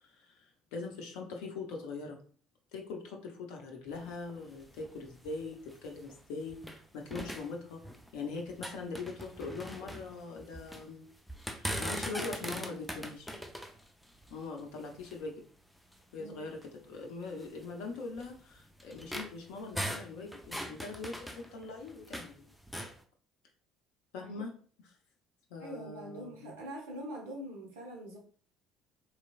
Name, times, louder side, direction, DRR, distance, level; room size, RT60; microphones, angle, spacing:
voice 1, 0.0-2.2 2.7-7.8 8.1-11.1 11.6-13.4 14.3-15.3 16.1-22.5 24.1-24.5 25.5-26.6, left 4 dB, 60° left, 2 dB, 0.6 m, -42 dB
sound 1, 3.9-6.8 7.1-8.2 8.5-10.9 11.3-15.3 15.9-16.0 16.5-16.6 17.4-22.3 22.6-23.0, equal, ahead, 0.5 m, -41 dB
voice 2, 25.6-28.2, right 1 dB, 70° right, -2 dB, 0.9 m, -44 dB
3.2 x 3.0 x 2.4 m, 0.44 s
figure-of-eight pair, 55°, 0 cm